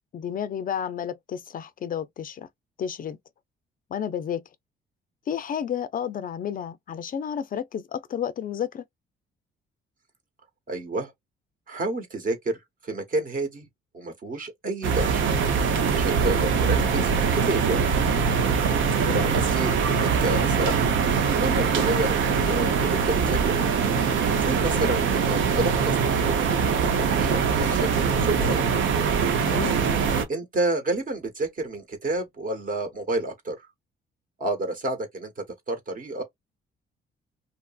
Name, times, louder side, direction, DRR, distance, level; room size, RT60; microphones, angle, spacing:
voice 1, 0.1-2.5 2.8-3.2 3.9-4.4 5.3-8.8 19.0-19.4 29.2-29.8, left 8 dB, 45° left, 0.4 m, -31 dB
voice 2, 10.7-11.1 11.7-13.7 13.9-15.3 15.9-17.8 19.1-20.8 21.4-23.9 24.2-26.4 27.0-27.9 28.1-28.6 30.3-33.6 34.4-36.2, right 2 dB, 45° right, 1.0 m, -30 dB
sound 1, 14.8-30.2, right 6 dB, 75° right, 0.6 m, -23 dB
2.7 x 2.5 x 2.3 m
cardioid pair, 90°, 20 cm